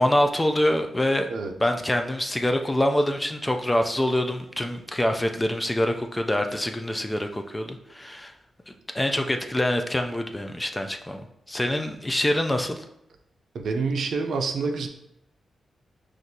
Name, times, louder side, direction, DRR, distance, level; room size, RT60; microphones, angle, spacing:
voice 1, 0.0-1.3 1.6-8.3 8.9-12.8, left 1 dB, 10° left, 5 dB, 0.3 m, -25 dB
voice 2, 13.5-14.9, right 4 dB, 75° right, 4 dB, 0.5 m, -27 dB
6.0 x 2.5 x 2.7 m, 0.81 s
wide cardioid pair, 120°, 0 cm